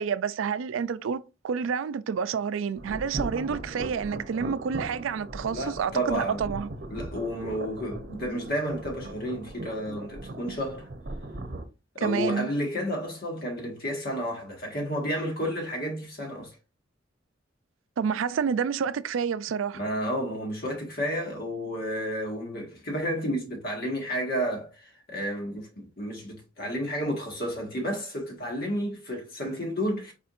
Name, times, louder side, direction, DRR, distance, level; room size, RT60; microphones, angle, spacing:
voice 1, 0.0-6.7 12.0-12.5 18.0-19.8, right 6 dB, 85° right, 0.4 m, -29 dB
sound 1, 2.8-11.6, right 1 dB, 55° right, 0.8 m, -38 dB
voice 2, 5.4-6.5 6.9-10.9 12.0-16.6 19.7-30.1, equal, 55° left, 1.7 m, -31 dB
4.8 x 4.3 x 2.5 m
head